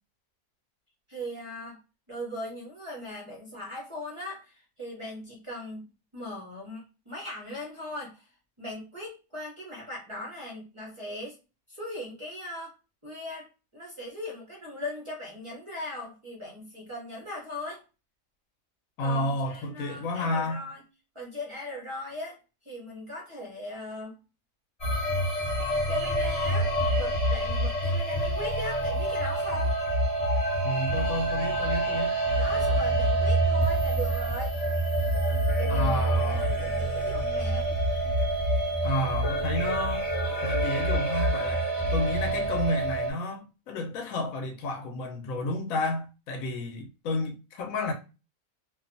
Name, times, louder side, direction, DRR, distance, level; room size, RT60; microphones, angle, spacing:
voice 1, 1.1-1.8 2.1-8.3 8.6-11.4 11.7-12.7 13.0-17.8 19.0-20.8 21.1-22.4 22.6-24.2 25.9-26.7 27.0-29.8 32.4-34.6 35.6-37.7, left 1 dB, 35° right, 0.5 m, -39 dB
voice 2, 19.0-20.6 30.6-32.1 35.7-36.5 38.8-40.1 40.4-47.9, left 1 dB, 65° left, 1.0 m, -31 dB
sound 1, 24.8-43.1, right 1 dB, 35° left, 0.6 m, -27 dB
2.7 x 2.3 x 2.5 m
omnidirectional pair, 1.7 m